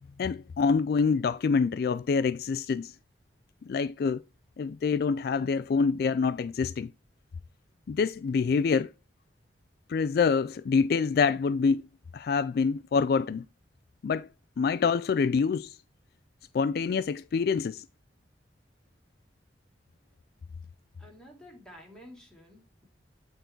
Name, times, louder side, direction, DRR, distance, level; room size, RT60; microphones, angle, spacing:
voice 1, 0.2-2.9 3.7-4.2 4.6-6.9 7.9-8.9 9.9-11.8 12.1-13.4 14.0-14.3 14.6-15.8 16.5-17.8, left 5 dB, 60° left, 0.3 m, -26 dB
voice 2, 21.0-22.9, equal, 5° left, 2.5 m, -51 dB
9.1 x 3.8 x 4.5 m
head